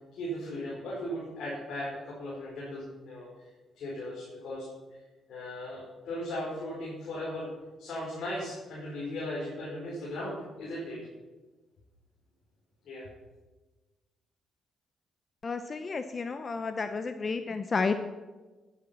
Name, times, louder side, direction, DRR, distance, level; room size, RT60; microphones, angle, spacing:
voice 1, 0.1-5.0 5.3-7.5 7.8-11.0 12.8-13.1, left 1 dB, 70° left, -5 dB, 4.8 m, -37 dB
voice 2, 15.4-17.9, left 4 dB, 35° left, 9 dB, 0.7 m, -31 dB
12.0 x 9.4 x 6.0 m, 1.2 s
cardioid pair, 90°, 0 cm